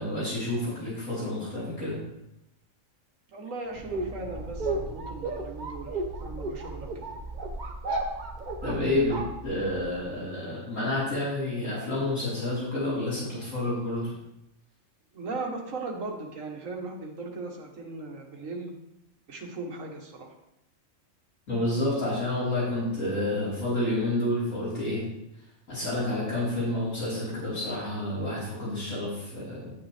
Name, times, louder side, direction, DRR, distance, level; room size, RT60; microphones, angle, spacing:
voice 1, 0.0-2.0 8.6-14.1 21.5-25.0 25.7-29.7, left 1 dB, 80° left, -9 dB, 4.6 m, -29 dB
voice 2, 3.3-7.1 15.1-18.8 19.3-20.3, right 3 dB, 80° right, 2 dB, 1.7 m, -38 dB
sound 1, 3.7-10.0, right 2 dB, 40° right, 1.0 m, -34 dB
9.1 x 8.7 x 3.4 m, 0.86 s
omnidirectional pair, 1.3 m